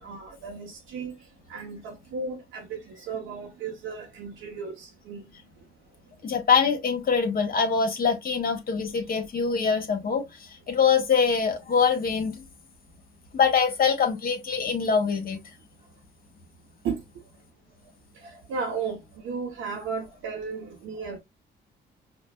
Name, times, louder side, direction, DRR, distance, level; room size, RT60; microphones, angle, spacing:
voice 1, 0.0-1.1 1.5-5.3 16.8-17.0 18.2-21.2, right 5 dB, 90° right, 0.9 m, -34 dB
voice 2, 6.2-12.4 13.3-15.4, left 6 dB, 50° left, 1.3 m, -24 dB
5.1 x 2.3 x 2.3 m
cardioid pair, 90°, 20 cm